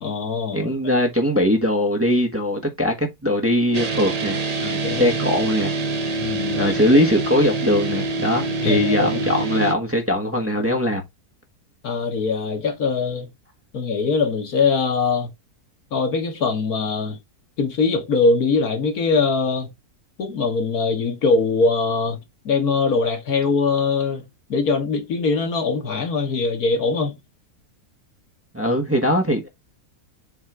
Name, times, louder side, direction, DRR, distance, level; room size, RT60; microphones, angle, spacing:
voice 1, 0.0-0.7 4.6-5.2 6.2-6.7 8.6-9.3 11.8-13.3 13.7-15.3 15.9-17.2 17.6-19.7 20.2-27.2, left 4 dB, 75° left, 1.9 m, -22 dB
voice 2, 0.5-4.4 5.0-5.7 6.6-11.0 28.5-29.5, equal, 10° right, 1.1 m, -20 dB
sound 1, 3.7-9.7, right 3 dB, 35° right, 0.6 m, -25 dB
7.2 x 3.7 x 4.7 m
omnidirectional pair, 1.6 m